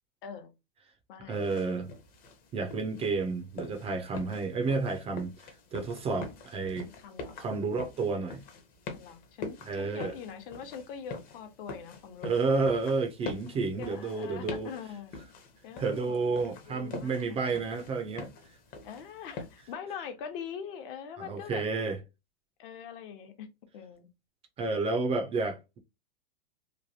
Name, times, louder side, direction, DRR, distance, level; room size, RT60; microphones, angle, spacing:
voice 1, 0.2-0.5 1.1-1.5 6.7-7.4 8.9-12.5 13.8-15.1 15.6-16.3 16.7-17.4 18.8-21.7 22.6-24.1, left 7 dB, 60° left, 0.9 m, -43 dB
sound 1, 1.3-19.7, left 4 dB, 30° left, 0.7 m, -45 dB
voice 2, 1.3-1.9 2.5-5.3 5.7-6.9 7.4-8.4 9.7-10.2 12.2-14.7 15.8-18.3 21.2-22.0 24.6-25.8, right 4 dB, 20° right, 0.4 m, -30 dB
3.1 x 2.2 x 2.6 m
hypercardioid pair, 125°, 31 cm